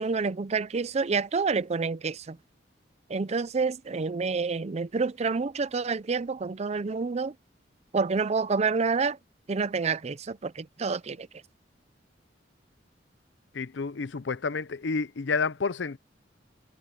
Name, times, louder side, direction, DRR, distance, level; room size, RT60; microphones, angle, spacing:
voice 1, 0.0-2.4 3.1-7.3 7.9-9.2 9.5-11.3, right 4 dB, 35° right, 0.5 m, -28 dB
voice 2, 13.5-16.0, left 4 dB, 75° left, 0.6 m, -30 dB
head